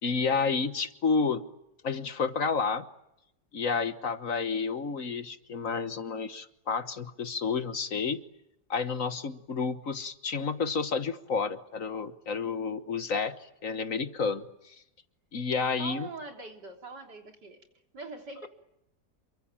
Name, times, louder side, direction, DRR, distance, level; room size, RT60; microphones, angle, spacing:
voice 1, 0.0-1.4 1.8-2.8 3.5-8.2 8.7-14.8 15.3-16.1, left 5 dB, 50° left, 11 dB, 1.6 m, -30 dB
voice 2, 15.8-17.6 17.9-18.5, right 3 dB, 80° right, 3 dB, 4.0 m, -42 dB
28.0 x 23.5 x 8.9 m, 0.83 s
omnidirectional pair, 1.8 m